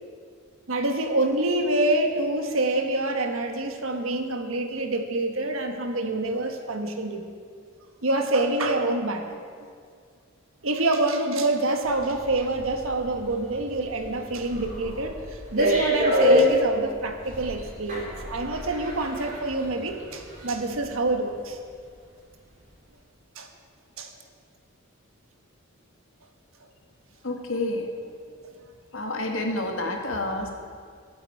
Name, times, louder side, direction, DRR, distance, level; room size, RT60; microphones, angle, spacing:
voice 1, 0.7-7.2 8.0-9.3 10.6-21.6 23.3-23.5 24.0-24.1, right 2 dB, 75° right, 5 dB, 1.4 m, -26 dB
sound 1, 11.8-20.9 21.2-21.4, equal, 40° right, 3.4 m, -27 dB
voice 2, 27.2-27.9 28.9-30.5, left 2 dB, 70° left, 2 dB, 1.8 m, -29 dB
23.0 x 8.6 x 4.8 m, 2.1 s
head